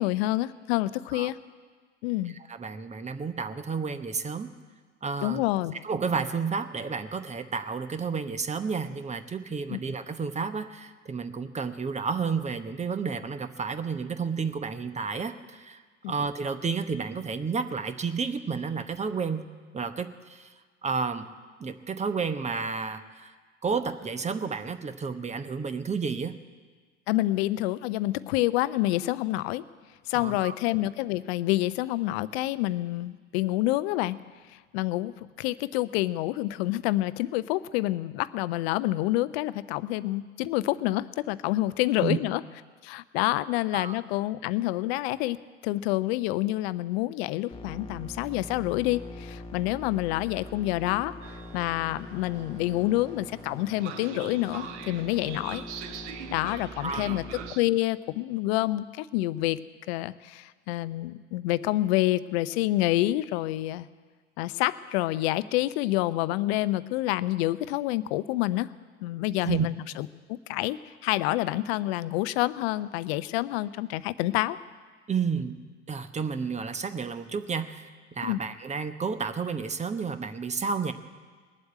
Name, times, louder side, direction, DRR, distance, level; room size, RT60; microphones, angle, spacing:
voice 1, 0.0-1.4 2.0-2.3 5.2-5.8 9.7-9.8 16.0-16.1 27.1-29.6 30.1-34.2 34.5-42.4 42.8-55.6 56.3-59.6 59.9-63.9 64.4-68.7 69.0-74.6 78.2-78.4, left 17 dB, 55° left, 16 dB, 0.7 m, -28 dB
voice 2, 2.5-4.5 5.0-5.4 5.8-15.8 16.1-19.5 19.7-20.5 20.8-21.3 21.6-23.3 23.6-26.4 30.1-30.5 42.0-42.2 43.7-44.0 56.8-57.2 69.4-69.7 75.1-75.6 75.9-80.9, right 5 dB, 20° right, 11 dB, 1.0 m, -31 dB
sound 1, 47.5-57.5, left 2 dB, 15° left, 1.0 m, -43 dB
Train, 51.2-57.6, right 9 dB, 65° right, 0.9 m, -43 dB
20.0 x 7.9 x 9.1 m, 1.5 s
figure-of-eight pair, 70°, 37 cm